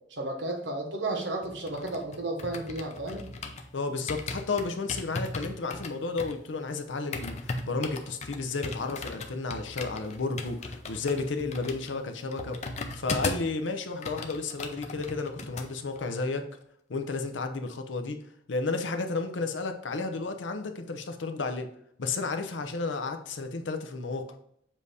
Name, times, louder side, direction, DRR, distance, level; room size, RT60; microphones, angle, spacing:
voice 1, 0.0-3.2, right 2 dB, 65° right, 3 dB, 1.1 m, -33 dB
sound 1, 1.4-3.7 4.1-13.6 13.8-15.7 16.0-16.2, left 3 dB, 35° left, 0.5 m, -37 dB
voice 2, 3.7-12.6 12.9-16.5 16.9-18.2 18.5-21.7 22.0-24.3, left 3 dB, 70° left, 6 dB, 0.7 m, -32 dB
7.3 x 2.7 x 4.8 m, 0.71 s
head